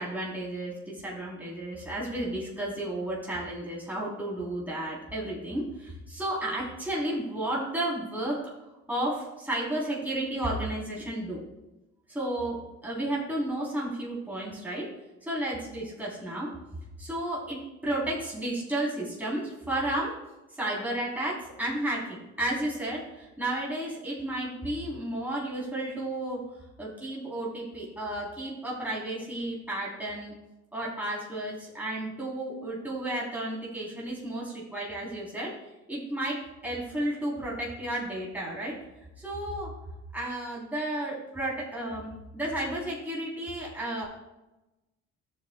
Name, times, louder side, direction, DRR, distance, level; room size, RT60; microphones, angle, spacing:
voice 1, 0.0-8.4 8.9-11.4 12.1-14.9 15.2-16.5 17.0-20.1 20.5-26.4 26.8-30.3 30.7-35.5 35.9-38.8 39.2-39.7 40.1-44.1, right 1 dB, 5° right, -6 dB, 3.3 m, -32 dB
13.0 x 7.5 x 2.2 m, 0.99 s
cardioid pair, 90°, 30 cm